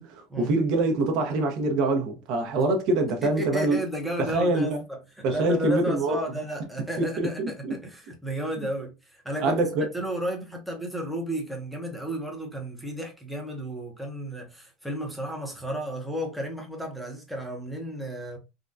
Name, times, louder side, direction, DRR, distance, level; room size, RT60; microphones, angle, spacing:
voice 1, 0.0-3.8 4.2-4.8 5.2-6.2 7.0-7.8 9.4-9.9, right 2 dB, 45° right, 0.8 m, -25 dB
voice 2, 3.2-9.6 9.9-18.4, equal, ahead, 0.7 m, -33 dB
3.5 x 2.2 x 2.6 m
supercardioid pair, 170°, 0 cm